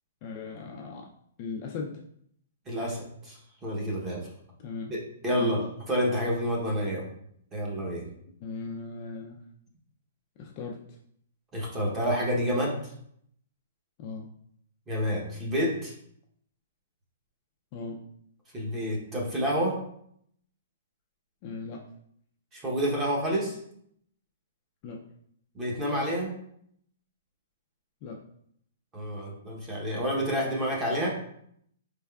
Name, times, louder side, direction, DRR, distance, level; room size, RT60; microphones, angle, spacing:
voice 1, 0.2-1.1 1.4-1.9 4.6-4.9 5.3-5.6 8.4-9.4 10.4-10.8 14.0-14.3 17.7-18.0 21.4-21.8 24.8-25.0 28.0-28.2, left 4 dB, 25° left, -1 dB, 0.3 m, -37 dB
voice 2, 2.7-4.2 4.9-5.0 5.2-7.1 7.5-8.1 11.5-12.9 14.9-15.9 18.5-19.8 22.5-23.6 25.5-26.3 28.9-31.1, equal, 10° right, -2 dB, 0.7 m, -29 dB
4.4 x 3.5 x 2.2 m, 0.69 s
hypercardioid pair, 175°, 0 cm